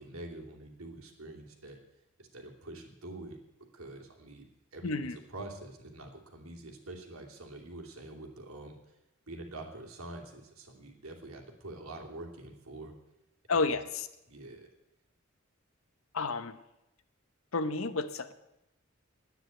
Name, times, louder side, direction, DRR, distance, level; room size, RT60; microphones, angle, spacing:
voice 1, 0.0-1.8 2.2-3.4 3.7-4.5 4.7-8.7 9.3-12.9 13.5-13.8 14.3-14.7, right 2 dB, 90° right, 1 dB, 2.8 m, -46 dB
voice 2, 4.8-5.2 13.5-14.1 16.1-16.6 17.5-18.3, left 3 dB, 75° left, 12 dB, 0.9 m, -31 dB
10.5 x 9.6 x 9.2 m, 0.91 s
head